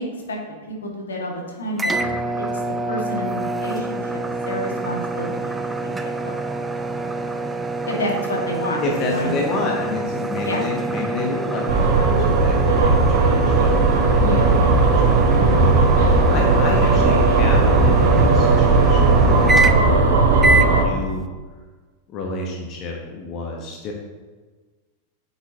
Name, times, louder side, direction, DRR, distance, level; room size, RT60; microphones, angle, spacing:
voice 1, 0.0-1.9 2.4-2.5 2.9-4.2 4.5-6.4 7.9-9.3 10.5-10.6 14.2-14.6, left 1 dB, 70° left, -1 dB, 1.9 m, -29 dB
sound 1, 1.8-20.0 20.4-20.7, right 2 dB, 10° right, 0.5 m, -26 dB
voice 2, 7.0-7.5 8.8-20.1 20.5-21.3 22.1-23.9, left 3 dB, 35° left, 0 dB, 1.2 m, -30 dB
sound 2, 11.7-20.8, right 3 dB, 55° right, 1.2 m, -16 dB
9.9 x 6.9 x 2.9 m, 1.3 s
figure-of-eight pair, 90°, 0 cm